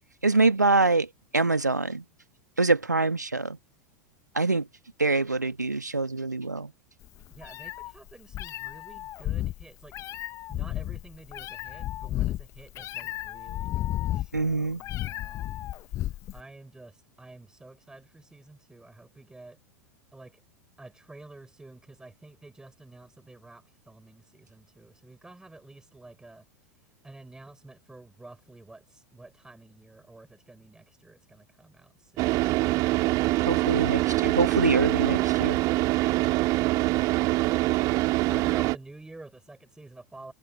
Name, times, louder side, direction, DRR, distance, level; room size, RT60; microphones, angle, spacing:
voice 1, 0.2-2.0 2.6-3.6 4.3-4.7 5.0-6.7 14.3-14.8 33.4-35.6, right 3 dB, 85° right, 1.5 m, -25 dB
Meow, 7.0-16.4, left 14 dB, 35° left, 1.3 m, -33 dB
voice 2, 7.3-9.9 10.5-15.5 16.3-19.6 20.1-20.4 20.8-26.5 27.0-32.9 36.5-40.3, right 2 dB, 5° right, 5.8 m, -50 dB
Car / Idling, 32.2-38.8, right 20 dB, 40° right, 2.0 m, -24 dB
figure-of-eight pair, 85°, 9 cm